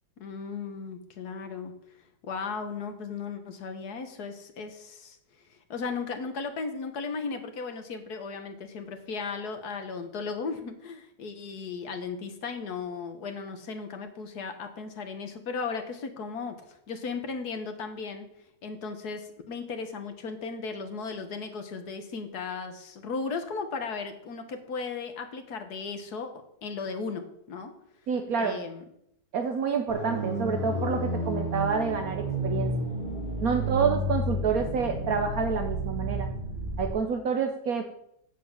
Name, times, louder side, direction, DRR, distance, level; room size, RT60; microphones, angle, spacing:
voice 1, 0.2-1.7 2.2-5.2 5.5-18.3 18.6-26.3 26.6-27.7 28.4-28.8 33.5-33.9, left 4 dB, 70° left, 7 dB, 1.8 m, -36 dB
voice 2, 28.1-28.6 29.3-32.7 33.4-36.3 36.8-37.8, right 6 dB, 65° right, 6 dB, 1.2 m, -28 dB
sound 1, 29.9-36.9, equal, 25° left, 3.0 m, -31 dB
8.0 x 7.0 x 7.3 m, 0.74 s
omnidirectional pair, 1.8 m